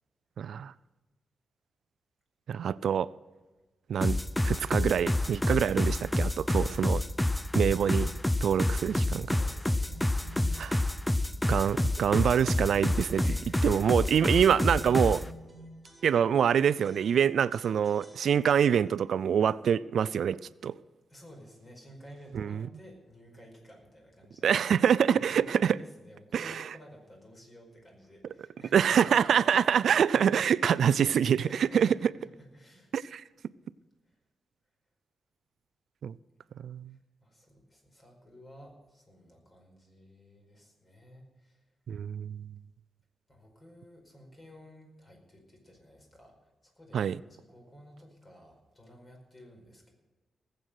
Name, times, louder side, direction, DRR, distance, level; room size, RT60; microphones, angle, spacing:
voice 1, 0.4-0.7 2.5-3.1 3.9-7.0 7.5-8.1 8.4-9.3 10.6-10.8 11.5-13.2 13.6-15.2 16.0-20.8 22.3-22.7 24.4-25.8 26.3-26.6 28.7-31.9 32.9-33.2 36.0-36.2 36.6-36.9 41.9-42.5 46.9-47.2, right 8 dB, 70° right, 0.3 m, -25 dB
sound 1, 4.0-15.3, left 1 dB, 10° left, 0.5 m, -28 dB
sound 2, 7.8-8.2 8.8-9.2 9.8-11.2 11.5-12.1 12.5-13.6 14.1-16.5 16.8-18.7, right 1 dB, 10° right, 3.6 m, -52 dB
voice 2, 8.5-8.8 9.3-10.1 13.2-14.0 21.1-24.6 25.1-29.0 29.5-29.8 31.5-32.9 34.0-34.2 36.9-41.7 43.3-49.9, equal, 30° left, 4.9 m, -53 dB
19.0 x 7.9 x 6.4 m
cardioid pair, 110°, 0 cm